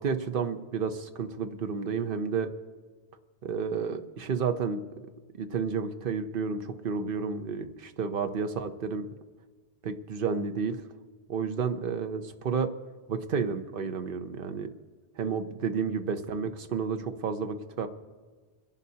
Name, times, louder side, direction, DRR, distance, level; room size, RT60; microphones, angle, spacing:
voice 1, 0.0-2.5 3.4-4.8 5.4-9.1 9.8-10.8 11.3-12.7 13.1-14.7 15.2-17.9, right 5 dB, 55° right, 8 dB, 0.9 m, -31 dB
25.5 x 11.0 x 2.8 m, 1.4 s
omnidirectional pair, 1.1 m